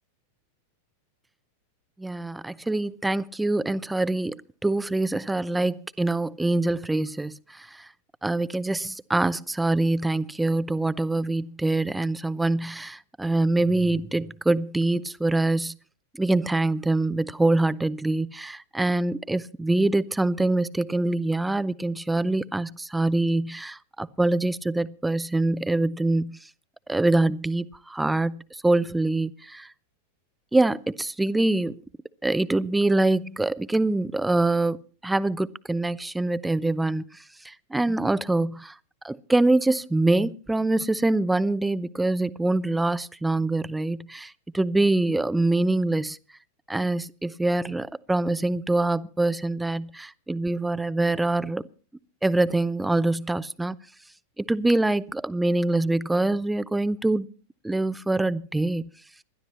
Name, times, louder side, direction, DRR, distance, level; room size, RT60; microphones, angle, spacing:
voice 1, 2.0-7.9 8.2-15.8 16.1-26.4 26.9-29.7 30.5-31.8 32.2-38.8 39.0-46.2 46.7-51.6 52.2-53.8 54.4-57.3 57.6-58.9, right 2 dB, 5° right, 0.6 m, -24 dB
27.5 x 12.0 x 3.0 m
figure-of-eight pair, 90°, 0 cm